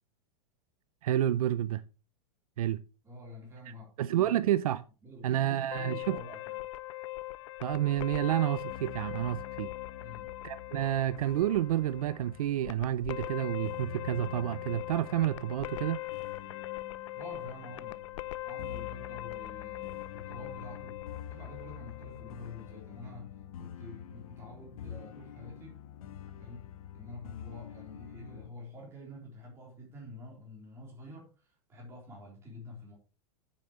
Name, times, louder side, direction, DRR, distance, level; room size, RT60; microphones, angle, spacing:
voice 1, 1.0-1.8 2.6-2.8 4.0-4.8 5.2-6.2 7.6-9.7 10.4-16.0, right 12 dB, 75° right, 0.6 m, -29 dB
voice 2, 3.0-3.9 4.2-4.5 5.0-6.6 10.0-10.3 17.1-18.0 18.4-21.0 21.3-25.8 26.4-26.7 26.9-33.0, left 1 dB, 15° right, 3.9 m, -48 dB
sound 1, 5.7-22.8, left 17 dB, 55° left, 0.6 m, -41 dB
sound 2, 8.7-28.5, left 9 dB, 75° left, 1.3 m, -47 dB
9.5 x 8.4 x 3.2 m
supercardioid pair, 175°, 19 cm